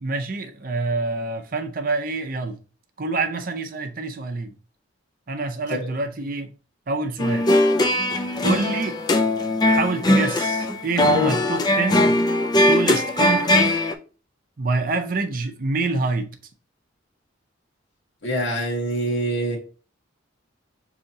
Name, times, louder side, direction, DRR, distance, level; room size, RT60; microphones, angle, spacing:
voice 1, 0.0-2.6 3.0-4.5 5.3-6.5 6.9-7.5 8.4-9.0 9.7-12.2 12.7-13.8 14.6-16.3, right 3 dB, 45° right, 0.5 m, -26 dB
sound 1, 7.2-13.9, left 1 dB, 20° left, 0.3 m, -20 dB
voice 2, 18.2-19.6, right 1 dB, 60° left, 1.2 m, -25 dB
6.3 x 2.8 x 2.7 m
head